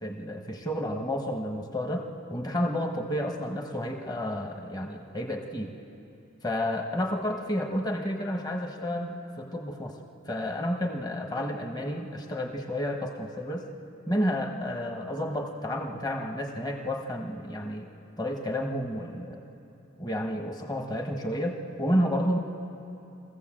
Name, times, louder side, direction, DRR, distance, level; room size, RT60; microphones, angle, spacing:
voice 1, 0.0-5.8 6.4-10.0 10.3-13.7 14.1-17.9 18.2-19.4 20.0-22.4, equal, 20° left, 2 dB, 1.3 m, -31 dB
22.5 x 15.5 x 7.6 m, 2.8 s
head